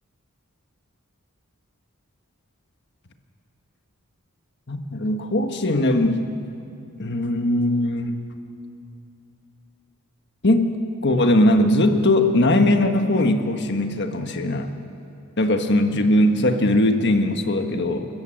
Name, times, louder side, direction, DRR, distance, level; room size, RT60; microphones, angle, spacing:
voice 1, 4.7-6.2 7.0-8.2 10.4-10.8 11.0-14.7 15.4-18.1, left 1 dB, 50° left, 6 dB, 1.5 m, -20 dB
29.5 x 14.0 x 7.7 m, 2.6 s
head